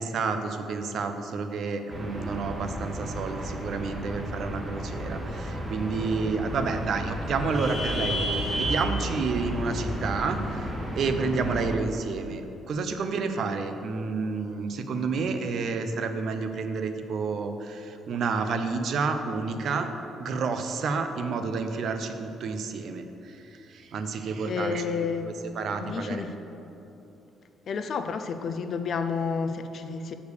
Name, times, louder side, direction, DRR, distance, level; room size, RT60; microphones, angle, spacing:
voice 1, 0.0-19.9 20.2-24.8 25.2-26.3, right 4 dB, 50° right, 7 dB, 0.5 m, -30 dB
sound 1, 1.9-11.8, equal, 15° right, 0.9 m, -32 dB
voice 2, 24.4-25.3 25.8-26.3 27.7-30.1, left 5 dB, 40° left, 8 dB, 0.4 m, -30 dB
6.7 x 5.0 x 6.4 m, 2.9 s
cardioid pair, 160°, 0 cm